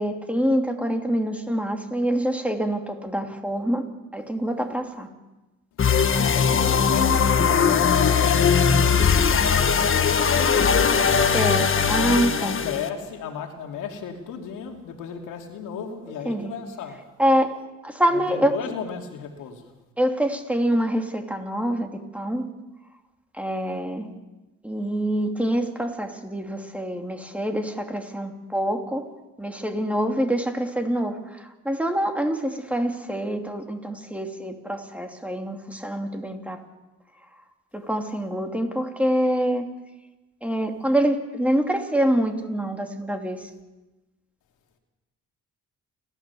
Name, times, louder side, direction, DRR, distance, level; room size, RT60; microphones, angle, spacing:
voice 1, 0.0-3.8 4.1-5.1 11.3-12.6 16.3-16.5 17.2-17.5 17.8-18.5 20.0-22.5 23.4-24.1 24.6-29.1 29.4-36.6 37.7-39.6 40.4-43.4, equal, 5° right, 4 dB, 2.7 m, -25 dB
voice 2, 5.7-10.6 11.8-17.0 18.1-19.7, left 7 dB, 90° left, 3 dB, 2.8 m, -35 dB
sound 1, 5.8-12.9, left 6 dB, 45° left, 1.4 m, -20 dB
29.5 x 13.0 x 7.1 m, 1.1 s
cardioid pair, 90°, 30 cm